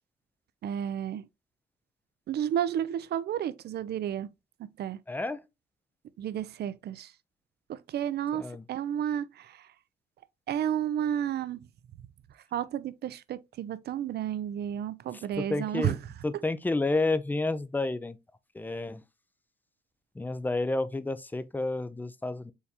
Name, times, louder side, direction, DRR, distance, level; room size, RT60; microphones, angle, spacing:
voice 1, 0.6-1.3 2.3-4.3 4.6-5.0 6.2-7.1 7.7-9.7 10.5-11.7 12.5-16.0, right 10 dB, 55° right, 0.4 m, -32 dB
voice 2, 5.1-5.4 8.4-8.6 15.4-16.0 16.2-18.2 18.5-19.0 20.2-22.5, left 2 dB, 10° left, 0.4 m, -30 dB
4.6 x 3.3 x 2.8 m
cardioid pair, 90°, 20 cm